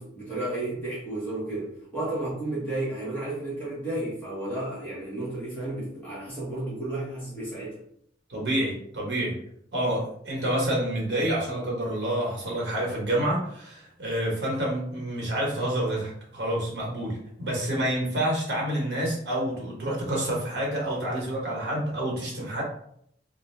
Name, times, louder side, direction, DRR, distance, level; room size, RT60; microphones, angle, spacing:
voice 1, 0.0-7.8, right 2 dB, 10° left, -9 dB, 1.0 m, -32 dB
voice 2, 8.3-9.4 9.7-22.6, right 1 dB, 75° right, -3 dB, 1.1 m, -28 dB
2.5 x 2.2 x 3.1 m, 0.69 s
head